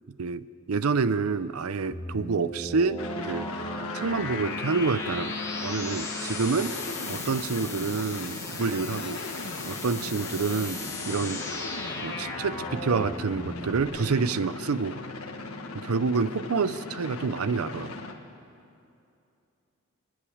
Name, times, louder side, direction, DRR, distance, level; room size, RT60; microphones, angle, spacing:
voice 1, 0.2-3.5 3.9-5.4 5.6-6.8 7.1-9.2 9.7-10.8 11.1-11.4 12.0-15.0 15.7-17.9, right 4 dB, 90° right, 15 dB, 0.6 m, -28 dB
sound 1, 1.9-13.8, left 2 dB, 15° left, 2.2 m, -37 dB
sound 2, 3.0-18.1, left 3 dB, 85° left, 1.7 m, -38 dB
29.5 x 10.5 x 8.6 m, 2.6 s
head